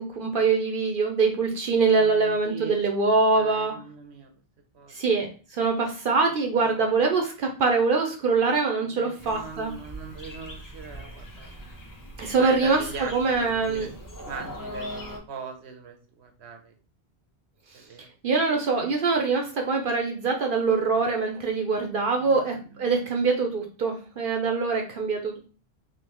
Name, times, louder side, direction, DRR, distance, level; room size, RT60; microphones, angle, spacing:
voice 1, 0.0-3.7 4.9-9.7 12.2-13.9 18.2-25.4, right 4 dB, 60° right, 3 dB, 0.8 m, -24 dB
voice 2, 1.8-4.3 4.7-5.0 6.5-7.0 8.9-11.6 12.4-13.9 14.2-16.7 17.7-18.1 22.2-23.0, right 5 dB, 85° right, 4 dB, 1.0 m, -41 dB
sound 1, 9.2-15.2, equal, 25° left, 0.5 m, -41 dB
3.6 x 2.8 x 2.9 m, 0.36 s
omnidirectional pair, 1.1 m